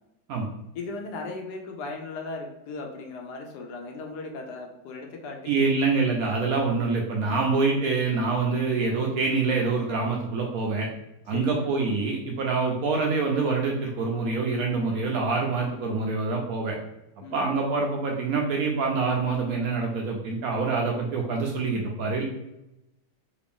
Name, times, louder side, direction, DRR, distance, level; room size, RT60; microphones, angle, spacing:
voice 1, 0.7-5.7 11.3-11.7 17.2-17.5, left 3 dB, 75° left, 2 dB, 1.1 m, -37 dB
voice 2, 5.5-10.9 11.3-16.8 17.3-22.2, right 4 dB, 70° right, 0 dB, 0.9 m, -26 dB
3.4 x 2.5 x 3.4 m, 0.89 s
omnidirectional pair, 1.9 m